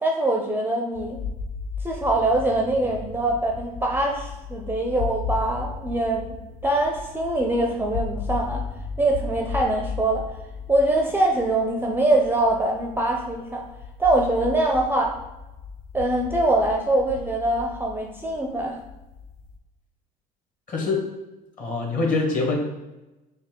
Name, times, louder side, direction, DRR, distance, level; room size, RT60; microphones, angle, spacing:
voice 1, 0.0-1.2 1.8-6.3 6.6-8.6 9.0-10.3 10.7-13.6 14.0-15.2 15.9-18.8, right 1 dB, 10° right, 1 dB, 0.4 m, -23 dB
sound 1, 0.9-19.6, left 5 dB, 70° left, 0.5 m, -36 dB
sound 2, 1.8-13.8, left 4 dB, 85° left, 1.1 m, -47 dB
voice 2, 20.7-21.0 21.6-22.6, left 3 dB, 40° left, 1 dB, 1.3 m, -24 dB
4.2 x 2.4 x 3.6 m, 1.0 s
supercardioid pair, 85°, 20 cm